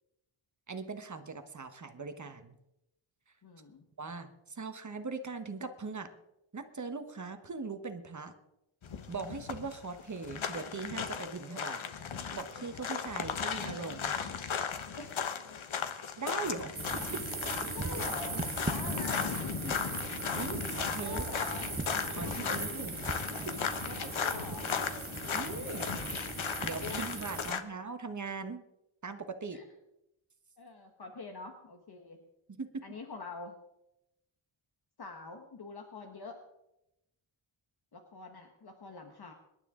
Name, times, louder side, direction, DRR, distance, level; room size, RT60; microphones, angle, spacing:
voice 1, 0.7-2.5 4.0-6.1 6.5-8.3 9.1-11.8 12.3-14.2 16.2-16.8 17.1-17.2 19.6-19.7 20.3-21.2 22.1-23.6 25.3-26.0 26.6-28.6 29.0-29.6 32.6-32.8, right 4 dB, 35° right, 7 dB, 1.2 m, -40 dB
voice 2, 3.4-3.8 15.0-15.4 17.7-19.3 21.0-21.7 22.2-22.6 23.8-24.7 26.6-27.1 29.5-29.6 30.6-32.2 32.8-33.5 35.0-36.4 37.9-39.3, left 4 dB, 50° left, 3 dB, 1.5 m, -45 dB
sound 1, 8.8-27.6, left 7 dB, 75° left, 1.3 m, -36 dB
sound 2, 16.7-27.5, right 3 dB, 20° right, 0.9 m, -39 dB
26.0 x 12.0 x 3.8 m, 0.89 s
wide cardioid pair, 180°, 48 cm